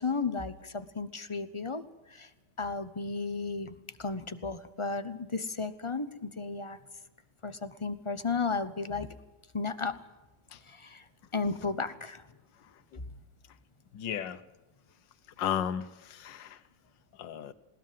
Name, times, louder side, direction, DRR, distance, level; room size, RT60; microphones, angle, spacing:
voice 1, 0.0-1.8 2.1-2.3 2.6-6.8 7.4-9.1 9.5-10.0 10.7-11.0 11.3-12.2, left 4 dB, 25° left, 11 dB, 0.6 m, -34 dB
voice 2, 13.9-14.4 15.4-16.6 17.2-17.5, left 9 dB, 75° left, 13 dB, 1.7 m, -34 dB
20.5 x 18.5 x 7.6 m, 1.0 s
omnidirectional pair, 2.0 m